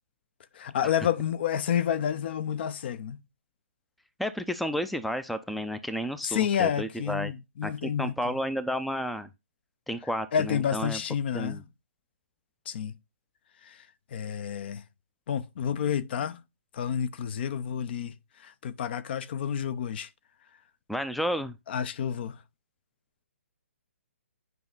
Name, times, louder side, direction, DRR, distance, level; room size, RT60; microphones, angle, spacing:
voice 1, 0.6-3.2 6.2-8.3 10.3-11.6 12.7-12.9 13.7-13.8 14.1-14.8 15.3-16.4 16.7-18.1 18.4-20.1 21.7-22.4, left 8 dB, 50° left, 0.7 m, -29 dB
voice 2, 4.2-7.3 7.6-9.3 9.9-11.0 11.3-11.6 20.9-21.6, equal, ahead, 0.5 m, -32 dB
9.4 x 5.0 x 3.9 m
hypercardioid pair, 140°, 7 cm